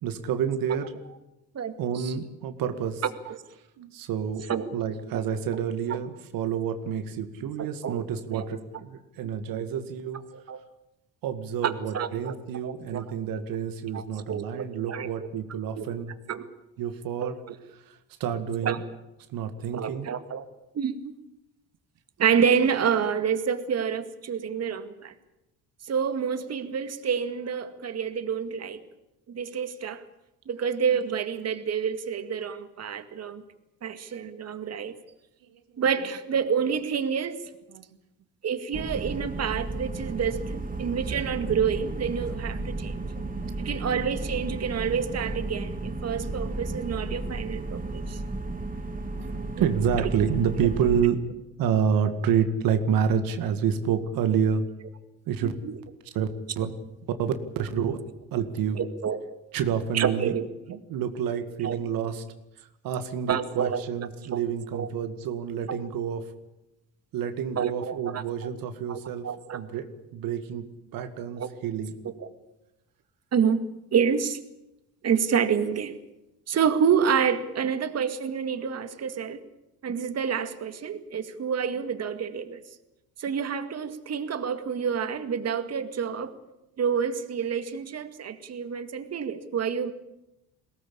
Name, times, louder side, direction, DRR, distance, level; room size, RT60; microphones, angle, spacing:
voice 1, 0.0-0.9 1.8-3.0 3.8-4.4 4.7-10.2 11.2-16.1 16.8-17.3 17.9-18.0 18.2-18.8 19.3-20.1 24.7-24.8 35.5-35.8 37.7-37.8 40.8-40.9 43.0-43.9 49.2-51.2 51.6-54.7 55.3-55.5 56.2-56.3 56.6-56.7 57.2-57.3 57.6-58.0 58.3-58.8 59.5-60.4 60.7-62.2 62.8-66.2 67.1-69.3 69.5-69.9 70.1-70.7 70.9-71.9, right 8 dB, 70° right, 8 dB, 2.1 m, -28 dB
voice 2, 1.5-2.2 3.0-3.4 4.4-4.7 5.1-5.2 5.5-5.6 5.9-6.0 7.6-8.0 8.3-8.5 10.3-10.6 11.6-12.4 12.6-13.2 13.9-15.3 15.8-15.9 16.3-16.4 17.2-17.6 18.6-18.8 19.7-20.5 20.7-21.1 22.2-25.1 25.9-28.8 29.3-30.0 30.5-33.4 33.8-35.0 35.8-37.4 38.4-43.0 43.6-48.2 50.0-50.1 55.4-55.8 58.7-59.2 59.9-60.5 61.6-61.8 63.3-63.8 64.3-64.4 64.7-64.9 65.7-65.8 67.6-68.2 68.9-69.6 70.9-71.0 71.4-71.5 72.0-72.3 73.3-73.6 73.9-74.4 75.0-76.0 76.5-79.4 79.8-82.6 83.2-86.3 86.8-89.9, right 7 dB, 45° right, 10 dB, 2.1 m, -28 dB
sound 1, 38.7-51.0, right 2 dB, 25° right, 2.6 m, -33 dB
22.0 x 18.0 x 8.6 m, 0.92 s
cardioid pair, 100°, 35 cm